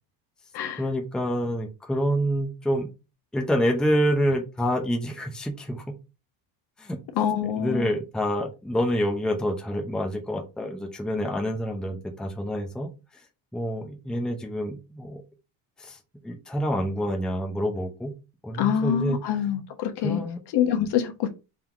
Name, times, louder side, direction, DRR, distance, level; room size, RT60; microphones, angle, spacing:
voice 1, 0.8-2.9 3.3-5.8 6.8-7.0 7.6-12.9 13.5-15.2 15.8-16.0 16.2-18.1 18.4-19.4 20.0-20.4, equal, ahead, 0.7 m, -27 dB
voice 2, 7.1-7.9 18.6-20.2 20.5-21.3, left 9 dB, 55° left, 1.1 m, -25 dB
4.0 x 2.8 x 4.8 m
supercardioid pair, 110°, 49 cm